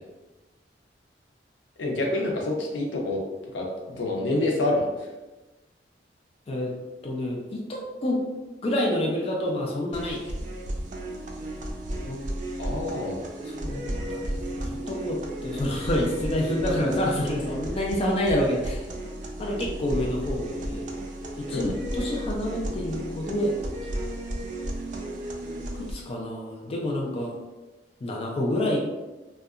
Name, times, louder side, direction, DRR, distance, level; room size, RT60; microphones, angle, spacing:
voice 1, 1.8-3.2 3.5-4.9 12.6-13.3 21.5-21.7, left 2 dB, 85° left, 0 dB, 0.6 m, -27 dB
voice 2, 7.0-8.2 8.6-10.4 12.1-12.2 13.4-18.9 19.4-20.8 21.4-23.5 23.8-24.0 25.7-27.3 28.0-28.8, left 1 dB, 35° left, -1 dB, 0.3 m, -28 dB
sound 1, 9.9-25.9, right 1 dB, 45° right, 0.4 m, -33 dB
2.7 x 2.2 x 2.4 m, 1.1 s
head